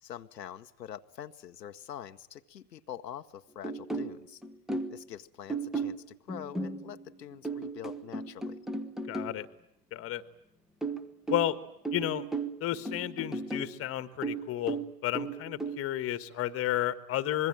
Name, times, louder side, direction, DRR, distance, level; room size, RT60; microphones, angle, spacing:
voice 1, 0.0-4.4 4.9-8.6, left 10 dB, 80° left, 7 dB, 1.1 m, -45 dB
sound 1, 3.6-5.0 5.5-9.4 10.8-13.8 14.2-15.8, right 3 dB, ahead, 1.2 m, -36 dB
voice 2, 9.1-9.5 9.9-10.2 11.3-11.6 11.9-12.2 12.6-14.8 15.0-17.5, left 13 dB, 30° left, 13 dB, 1.5 m, -32 dB
25.5 x 22.0 x 8.9 m, 0.80 s
hypercardioid pair, 100°, 49 cm